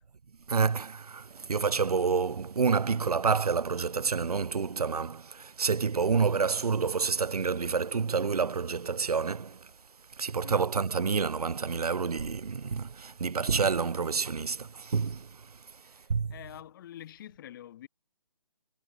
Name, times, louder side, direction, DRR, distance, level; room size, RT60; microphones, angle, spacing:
voice 1, 0.5-9.7 10.2-15.6 16.1-16.3, right 5 dB, 90° right, 0.4 m, -28 dB
voice 2, 15.8-17.9, left 12 dB, 35° left, 3.1 m, -47 dB
figure-of-eight pair, 145°, 19 cm